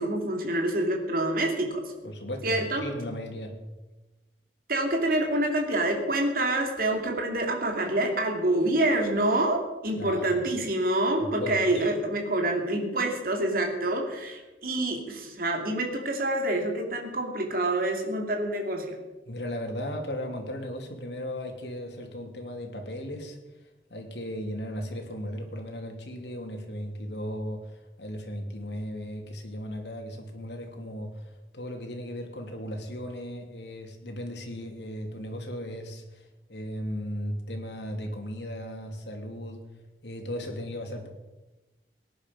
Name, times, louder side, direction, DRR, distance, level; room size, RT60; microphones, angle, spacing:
voice 1, 0.0-1.8 2.4-2.8 4.7-19.0, right 1 dB, 55° right, 2 dB, 2.7 m, -27 dB
voice 2, 2.0-3.6 10.0-10.4 11.2-11.9 19.3-23.4 23.9-39.6 40.0-41.1, equal, 75° left, 2 dB, 2.9 m, -36 dB
18.5 x 10.5 x 5.4 m, 1.1 s
head